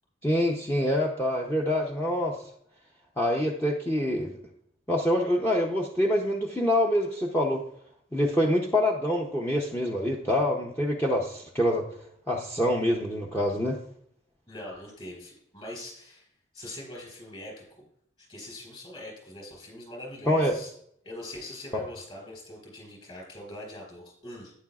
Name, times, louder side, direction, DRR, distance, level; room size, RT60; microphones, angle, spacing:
voice 1, 0.2-2.4 3.2-4.3 4.9-7.6 8.1-11.9 12.3-13.8 20.3-20.5 21.7-21.8, left 1 dB, 10° left, -2 dB, 0.6 m, -25 dB
voice 2, 14.5-16.3 16.5-17.8 18.2-20.7 21.0-24.5, left 1 dB, 30° left, 0 dB, 4.1 m, -42 dB
11.5 x 9.3 x 2.4 m, 0.68 s
head